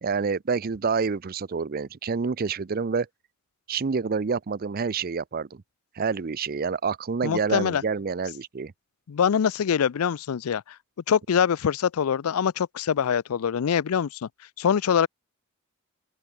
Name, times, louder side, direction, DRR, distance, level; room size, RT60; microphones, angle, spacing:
voice 1, 0.0-3.1 3.7-5.6 6.0-8.7, right 5 dB, 45° right, 0.5 m, -28 dB
voice 2, 7.2-7.8 9.1-10.6 11.1-14.3 14.6-15.1, left 7 dB, 80° left, 0.4 m, -24 dB
open air
head